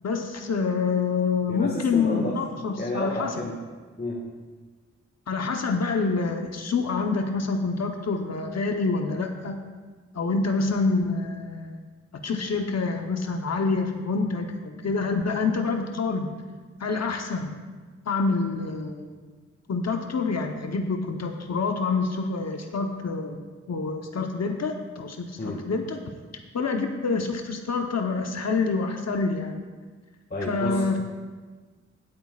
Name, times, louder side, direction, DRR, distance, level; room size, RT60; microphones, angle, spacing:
voice 1, 0.0-3.3 5.3-9.6 10.1-11.7 12.2-16.3 16.8-17.5 18.1-19.1 19.7-23.4 23.7-26.0 26.5-29.6 30.5-31.0, left 4 dB, 60° left, 4 dB, 1.0 m, -27 dB
voice 2, 1.5-2.4 2.7-3.6 4.0-4.3 25.4-25.6 30.3-31.0, left 1 dB, 35° left, -2 dB, 1.7 m, -31 dB
18.0 x 8.8 x 2.4 m, 1.4 s
cardioid pair, 60°, 29 cm